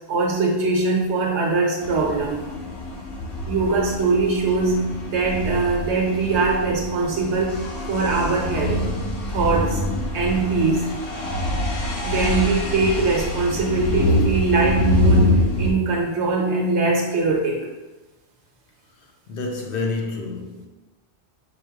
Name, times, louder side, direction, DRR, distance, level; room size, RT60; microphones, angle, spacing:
voice 1, 0.1-2.4 3.5-4.8 5.1-7.6 7.9-8.8 9.3-9.8 10.1-10.9 12.1-17.6, right 3 dB, 90° right, 1.1 m, -21 dB
sound 1, 1.8-15.7, left 1 dB, 85° left, 1.1 m, -25 dB
voice 2, 19.3-20.7, left 3 dB, 60° left, 0.8 m, -28 dB
4.9 x 2.0 x 4.6 m
omnidirectional pair, 1.1 m